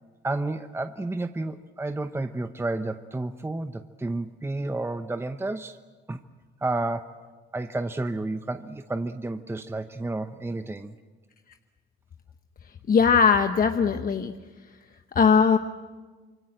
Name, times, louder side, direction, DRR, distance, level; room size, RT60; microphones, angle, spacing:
voice 1, 0.2-5.8 6.1-6.2 6.6-7.2 7.5-11.0, right 2 dB, 10° right, 9 dB, 0.9 m, -31 dB
voice 2, 12.9-14.3 15.1-15.6, left 6 dB, 45° left, 7 dB, 1.0 m, -19 dB
26.5 x 23.0 x 7.8 m, 1.4 s
cardioid pair, 90°, 20 cm